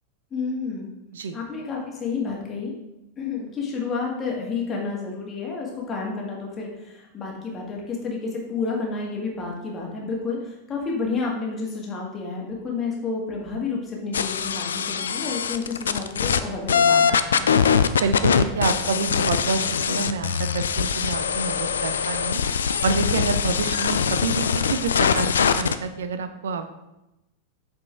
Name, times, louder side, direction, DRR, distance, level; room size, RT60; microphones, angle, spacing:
voice 1, 0.3-0.9 1.3-2.7 3.2-17.5, left 4 dB, 25° left, -2 dB, 1.8 m, -30 dB
sound 1, 14.1-16.4 16.7-25.8, left 7 dB, 65° left, 0.3 m, -22 dB
voice 2, 18.0-22.4 22.8-26.7, right 5 dB, 65° right, 10 dB, 0.5 m, -28 dB
7.8 x 4.4 x 3.4 m, 0.93 s
figure-of-eight pair, 90°, 0 cm